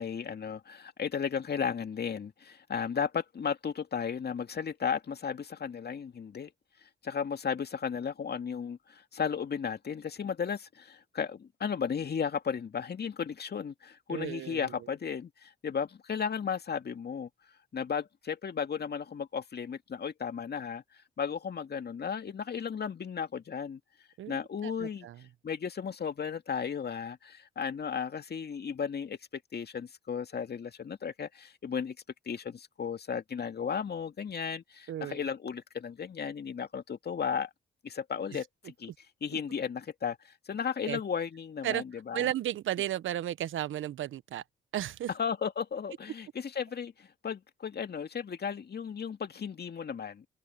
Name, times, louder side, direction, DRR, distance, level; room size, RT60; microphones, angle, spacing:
voice 1, 0.0-6.5 7.0-17.3 17.7-20.8 21.2-23.8 24.3-25.1 25.4-32.0 32.3-37.5 37.8-38.9 39.2-42.3 45.2-50.3, left 7 dB, 50° left, 2.3 m, -35 dB
voice 2, 14.1-14.9 24.2-24.4 24.6-25.2 34.9-35.3 38.3-38.4 40.8-41.0 41.6-41.8 42.1-44.4 44.7-45.1, right 12 dB, 70° right, 1.3 m, -34 dB
hypercardioid pair, 45°, 21 cm